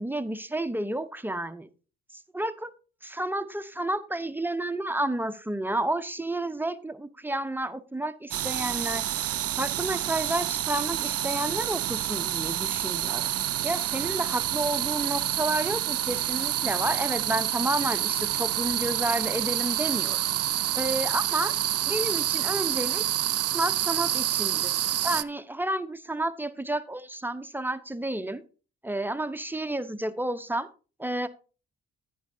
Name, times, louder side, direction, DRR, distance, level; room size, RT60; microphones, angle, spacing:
voice 1, 0.0-1.7 2.3-2.7 3.0-9.0 9.6-13.3 13.6-20.2 20.7-21.5 21.8-23.0 23.5-28.4 28.8-30.7 31.0-31.3, right 1 dB, 5° right, 11 dB, 0.9 m, -30 dB
sound 1, 8.3-25.2, right 12 dB, 50° right, 0.5 m, -28 dB
11.0 x 9.3 x 2.7 m, 0.36 s
hypercardioid pair, 45°, 33 cm